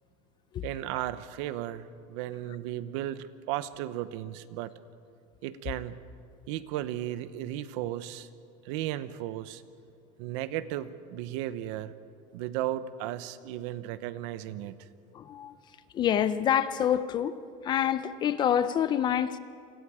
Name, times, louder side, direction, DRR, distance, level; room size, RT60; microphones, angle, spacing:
voice 1, 0.6-4.7 5.4-6.0 6.5-8.3 8.6-9.6 10.2-11.9 12.3-14.8, right 13 dB, 60° right, 14 dB, 1.0 m, -35 dB
voice 2, 15.1-15.5 15.9-17.3 17.6-19.4, left 9 dB, 25° left, 13 dB, 0.6 m, -26 dB
28.5 x 25.5 x 5.0 m, 2.4 s
cardioid pair, 175°, 18 cm